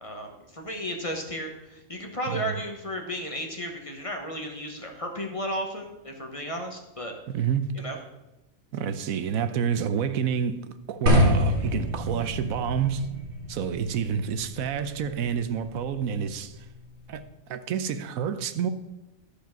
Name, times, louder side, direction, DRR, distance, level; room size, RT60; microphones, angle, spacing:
voice 1, 0.0-7.1 7.7-8.0, equal, 25° left, 1.1 m, -34 dB
voice 2, 7.3-7.8 8.7-13.1 13.5-16.7 17.1-17.2 17.5-18.7, right 7 dB, 85° right, 1.1 m, -29 dB
sound 1, 11.1-17.2, equal, 55° right, 1.8 m, -28 dB
12.0 x 5.1 x 5.8 m
omnidirectional pair, 1.4 m